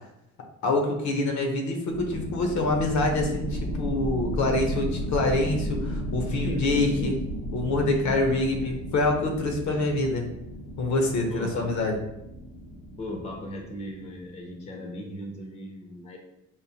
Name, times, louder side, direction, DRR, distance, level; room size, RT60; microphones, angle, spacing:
voice 1, 0.6-7.2 7.5-10.3 10.8-12.0, left 2 dB, 60° left, 3 dB, 0.7 m, -26 dB
sound 1, 1.9-14.2, equal, 80° left, 1.1 m, -34 dB
voice 2, 6.2-7.1 8.0-8.7 9.8-9.9 11.3-11.7 13.0-16.2, left 1 dB, 20° left, 1 dB, 0.5 m, -37 dB
5.1 x 2.1 x 2.8 m, 0.85 s
cardioid pair, 145°, 32 cm